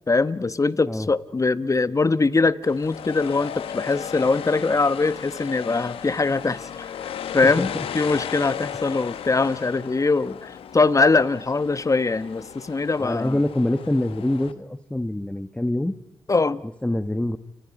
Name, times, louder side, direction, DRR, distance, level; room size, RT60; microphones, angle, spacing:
voice 1, 0.1-13.4 16.3-16.6, left 3 dB, 35° left, 1.2 m, -22 dB
sound 1, 2.6-14.5, left 8 dB, 80° left, 1.2 m, -35 dB
voice 2, 7.4-7.9 13.0-15.9 16.8-17.4, left 1 dB, 10° left, 1.3 m, -25 dB
29.5 x 26.5 x 5.3 m
supercardioid pair, 40°, 9 cm